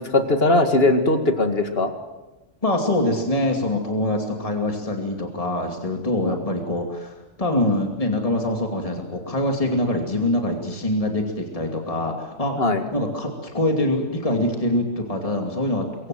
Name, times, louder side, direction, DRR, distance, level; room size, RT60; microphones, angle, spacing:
voice 1, 0.0-1.9 6.2-6.4 12.6-12.8, left 2 dB, 55° left, 6 dB, 2.4 m, -19 dB
voice 2, 2.6-12.6 12.9-15.9, left 1 dB, 30° left, 2 dB, 2.7 m, -24 dB
26.5 x 23.0 x 7.7 m, 1.1 s
omnidirectional pair, 1.2 m